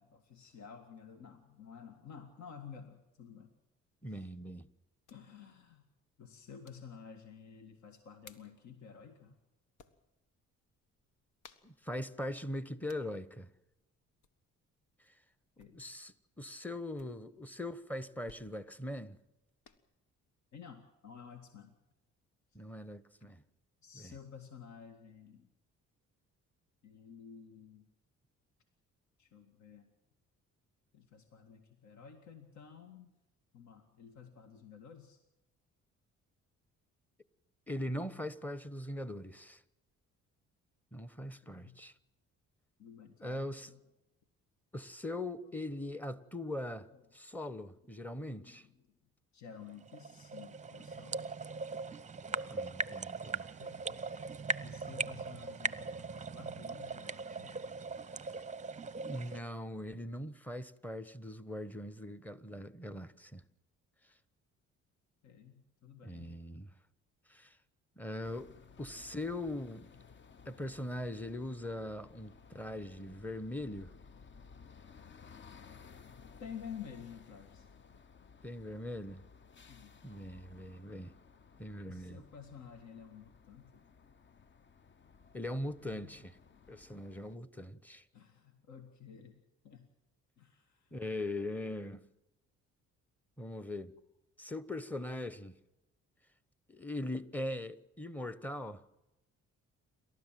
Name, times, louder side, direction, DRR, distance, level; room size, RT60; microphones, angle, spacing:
voice 1, 0.0-3.5 4.0-4.2 5.1-5.8 6.2-9.3 12.3-12.4 15.6-15.9 17.0-17.2 20.5-21.7 22.5-22.6 23.8-25.5 26.8-27.9 29.2-29.9 30.9-33.1 33.5-35.2 38.1-38.2 41.4-41.8 42.8-43.8 45.4-45.7 46.9-47.0 48.3-48.7 49.3-51.3 53.6-57.6 65.2-66.4 76.4-77.7 79.6-80.0 81.9-83.9 85.8-86.1 88.1-89.9 90.4-90.9, left 7 dB, 65° left, 2.1 m, -52 dB
sound 1, 3.5-19.8, left 5 dB, 85° left, 1.6 m, -66 dB
voice 2, 4.0-4.7 11.6-13.5 15.1-15.2 15.7-19.2 22.5-23.4 23.9-24.2 37.7-39.6 40.9-41.9 43.2-43.7 44.7-48.7 52.3-53.5 59.0-63.4 66.0-66.7 67.3-67.6 68.0-68.5 68.8-69.9 70.4-73.9 78.4-79.2 80.0-81.1 81.6-82.2 85.3-86.4 86.7-88.0 90.9-92.0 93.4-93.9 94.4-95.6 96.7-98.8, left 1 dB, 5° left, 1.1 m, -41 dB
sound 2, 49.6-59.4, right 3 dB, 25° right, 0.7 m, -40 dB
sound 3, 68.2-87.4, left 5 dB, 40° left, 0.8 m, -57 dB
28.5 x 13.0 x 7.6 m
cardioid pair, 90°, 30 cm